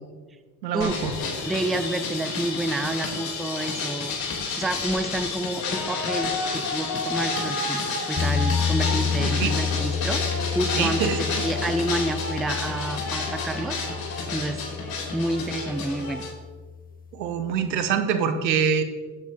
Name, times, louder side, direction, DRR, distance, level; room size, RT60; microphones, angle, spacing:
voice 1, 0.6-1.1 8.8-9.6 10.8-11.4 17.1-18.8, right 7 dB, 85° right, 9 dB, 1.1 m, -25 dB
sound 1, 0.8-16.3, left 4 dB, 45° left, 3.6 m, -30 dB
voice 2, 1.4-4.1 4.6-10.2 10.5-11.1 11.4-13.9 14.3-14.6 15.1-16.3, right 1 dB, ahead, 11 dB, 0.3 m, -29 dB
sound 2, 8.2-17.1, left 6 dB, 15° left, 0.7 m, -30 dB
12.5 x 8.5 x 3.8 m, 1.5 s
hypercardioid pair, 70°, 50 cm